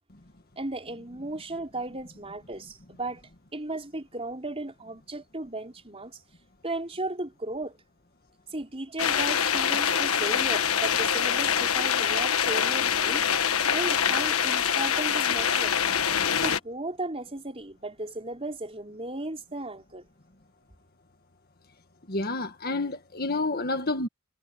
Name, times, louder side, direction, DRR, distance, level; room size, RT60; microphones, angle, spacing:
voice 1, 0.6-3.2 3.5-6.2 6.6-7.8 8.5-13.3 13.7-15.7 16.4-20.0, right 2 dB, 25° right, 4.5 m, -35 dB
sound 1, 9.0-16.6, left 8 dB, 75° left, 1.5 m, -25 dB
voice 2, 22.1-24.1, left 2 dB, 45° left, 1.7 m, -29 dB
head